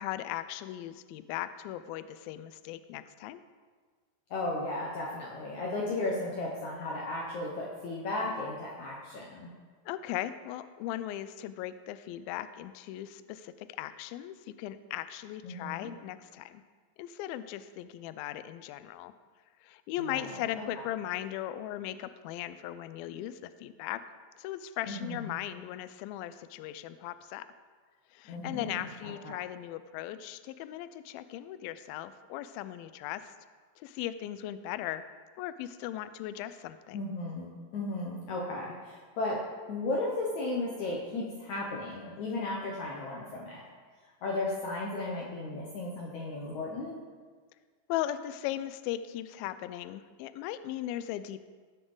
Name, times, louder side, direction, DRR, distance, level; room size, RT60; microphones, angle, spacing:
voice 1, 0.0-3.4 9.9-16.6 17.0-19.1 19.6-24.0 24.4-27.5 28.1-33.3 33.8-35.0 35.4-37.1 47.9-51.4, left 13 dB, 90° left, 13 dB, 2.1 m, -38 dB
voice 2, 4.3-9.5 15.4-15.9 20.0-20.6 24.9-25.4 28.3-29.3 36.9-43.6 44.2-47.0, left 2 dB, 70° left, -3 dB, 1.8 m, -35 dB
18.0 x 6.3 x 3.9 m, 1.5 s
omnidirectional pair, 4.8 m